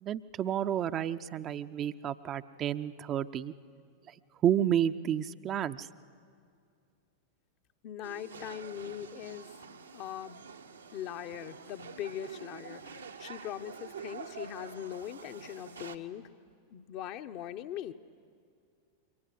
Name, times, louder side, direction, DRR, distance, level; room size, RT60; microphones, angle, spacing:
voice 1, 0.0-3.5 4.1-4.2 4.4-5.9, right 10 dB, 30° right, 10 dB, 0.6 m, -31 dB
voice 2, 7.8-9.5 9.9-10.4 10.9-16.3 16.7-17.9, left 11 dB, 40° left, 8 dB, 0.9 m, -41 dB
sound 1, 8.0-16.0, right 6 dB, 75° right, 1.1 m, -47 dB
28.5 x 23.5 x 7.6 m, 2.3 s
figure-of-eight pair, 90°, 0 cm